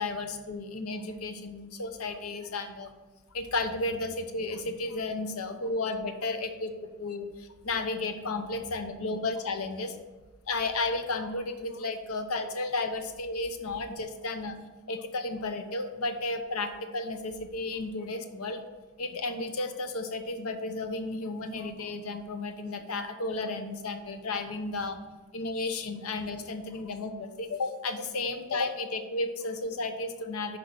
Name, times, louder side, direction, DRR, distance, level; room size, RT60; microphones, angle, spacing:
voice 1, 0.0-2.9 3.3-6.7 7.0-9.9 10.4-14.6 14.9-18.6 19.0-25.0 25.3-30.6, left 3 dB, 80° left, 7 dB, 0.8 m, -33 dB
5.3 x 5.3 x 6.0 m, 1.2 s
head